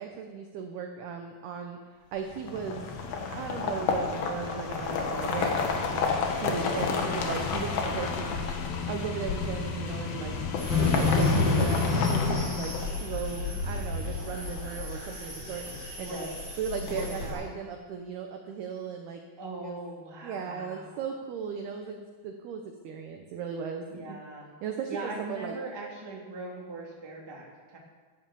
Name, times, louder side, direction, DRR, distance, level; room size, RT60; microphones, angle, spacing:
voice 1, 0.0-2.9 3.3-6.1 6.4-8.5 8.9-10.3 10.8-15.6 16.0-16.3 16.6-19.2 19.6-19.8 20.2-24.2 24.6-24.9 25.2-25.5, right 6 dB, 75° right, 3 dB, 2.3 m, -37 dB
sound 1, 2.4-13.2, left 4 dB, 65° left, 2.5 m, -29 dB
voice 2, 9.5-10.5 16.0-16.4 16.9-17.4 19.4-21.0 23.9-24.5 24.9-27.8, right 2 dB, 10° right, -4 dB, 1.5 m, -40 dB
sound 2, 10.6-17.3, left 3 dB, 20° left, 5.4 m, -32 dB
13.5 x 11.0 x 7.6 m, 1.5 s
omnidirectional pair, 5.9 m